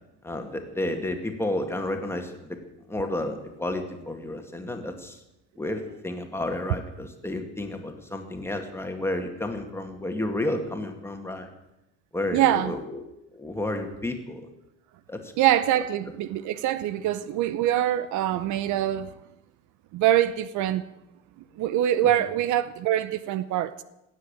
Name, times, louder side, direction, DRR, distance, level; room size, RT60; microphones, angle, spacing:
voice 1, 0.2-2.6 2.9-5.2 5.6-11.5 12.1-13.0 13.3-14.5 15.1-15.3 22.2-22.3, left 1 dB, 10° left, 2.1 m, -31 dB
voice 2, 12.3-12.7 15.4-19.1 19.9-20.8 21.6-23.8, right 12 dB, 70° right, 0.8 m, -24 dB
17.5 x 7.6 x 8.8 m
cardioid pair, 120°, 30 cm